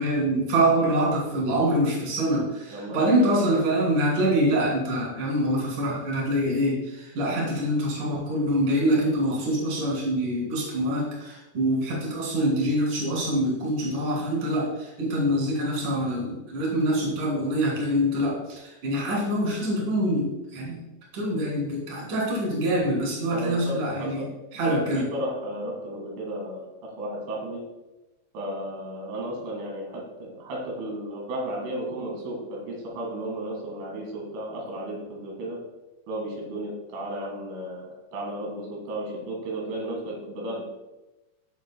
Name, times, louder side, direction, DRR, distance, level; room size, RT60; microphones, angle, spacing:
voice 1, 0.0-20.8 21.1-24.2 24.5-25.1, right 1 dB, 45° right, -4 dB, 4.2 m, -25 dB
voice 2, 2.7-3.6 23.3-24.3 24.6-27.6 28.3-35.6 36.1-40.6, right 1 dB, 85° right, -2 dB, 4.5 m, -34 dB
15.0 x 7.2 x 2.3 m, 1.0 s
omnidirectional pair, 5.5 m